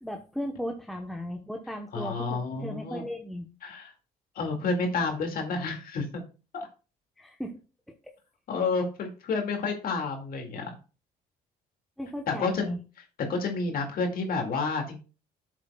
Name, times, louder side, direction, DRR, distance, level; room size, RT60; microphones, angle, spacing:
voice 1, 0.0-3.5 7.2-7.6 12.0-12.8, equal, ahead, 2 dB, 0.9 m, -36 dB
voice 2, 1.9-3.1 3.6-3.9 4.4-6.2 6.5-6.7 8.5-10.7 12.3-12.7 13.3-15.0, left 4 dB, 60° left, 3 dB, 2.1 m, -30 dB
11.0 x 7.5 x 2.3 m, 0.34 s
cardioid pair, 110°, 17 cm